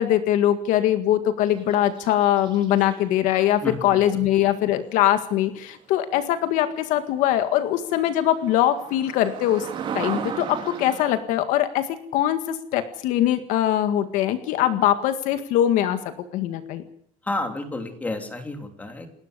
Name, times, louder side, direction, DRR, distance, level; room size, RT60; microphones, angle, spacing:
voice 1, 0.0-9.7 9.9-16.0 16.3-16.8, left 12 dB, 70° left, 10 dB, 1.9 m, -22 dB
sound 1, 1.5-3.0 6.5-6.6 7.1-7.2 7.4-11.2, right 7 dB, 35° right, 3.8 m, -35 dB
voice 2, 3.6-4.0 17.2-19.1, left 2 dB, 10° left, 5 dB, 3.2 m, -31 dB
29.0 x 13.0 x 8.3 m, 0.67 s
cardioid pair, 175°, 14 cm